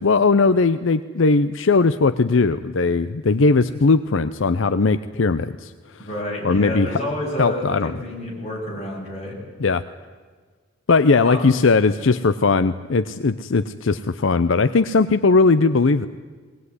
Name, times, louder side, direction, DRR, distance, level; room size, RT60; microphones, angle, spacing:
voice 1, 0.0-6.1 6.4-7.0 7.4-7.9 9.6-9.8 10.9-16.1, left 4 dB, 70° left, 12 dB, 0.6 m, -19 dB
voice 2, 6.0-9.4 11.2-11.5, left 1 dB, 35° left, -3 dB, 7.0 m, -29 dB
20.5 x 19.0 x 9.6 m, 1.5 s
head